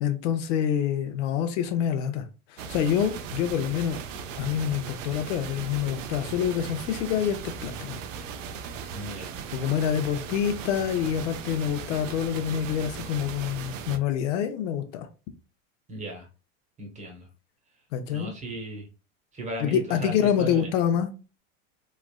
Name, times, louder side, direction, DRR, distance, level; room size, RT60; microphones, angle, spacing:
voice 1, 0.0-2.2 2.5-4.0 4.4-8.0 9.5-15.1 17.9-18.3 19.6-21.1, left 9 dB, 70° left, 8 dB, 0.6 m, -26 dB
sound 1, 2.6-14.0, right 6 dB, 85° right, 0.6 m, -38 dB
voice 2, 8.9-9.4 15.9-16.3 16.8-17.3 18.1-18.9 19.3-20.7, right 1 dB, 20° right, 2 dB, 0.9 m, -36 dB
3.1 x 2.4 x 2.2 m, 0.32 s
supercardioid pair, 125°, 38 cm